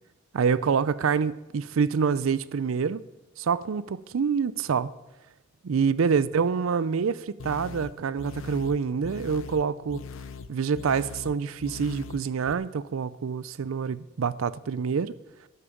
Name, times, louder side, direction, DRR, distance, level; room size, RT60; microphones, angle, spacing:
voice 1, 0.3-3.0 3.4-4.9 5.6-10.0 10.5-15.1, right 6 dB, 75° right, 0.4 m, -26 dB
sound 1, 7.4-12.5, left 5 dB, 70° left, 0.7 m, -42 dB
12.0 x 8.5 x 7.1 m
head